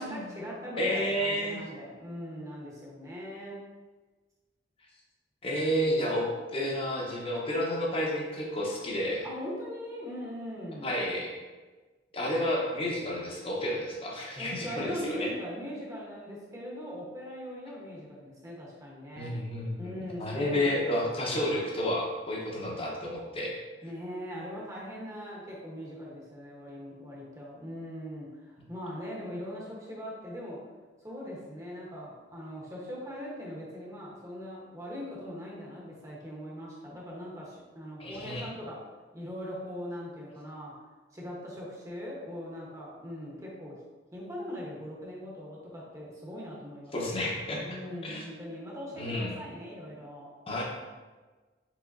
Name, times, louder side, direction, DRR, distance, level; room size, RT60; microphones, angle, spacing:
voice 1, 0.0-3.6 9.2-11.0 14.3-19.4 19.8-21.2 23.8-30.7 31.0-38.9 39.1-40.8 41.1-43.8 44.1-47.2 47.6-50.3, equal, 20° right, -4 dB, 1.0 m, -40 dB
voice 2, 0.8-1.6 5.4-9.2 10.8-11.3 12.1-15.3 19.2-23.5 38.0-38.5 46.9-47.7 48.0-48.2 49.0-49.3 50.5-50.6, left 1 dB, 30° left, -2 dB, 0.9 m, -31 dB
4.8 x 3.8 x 2.6 m, 1.3 s
head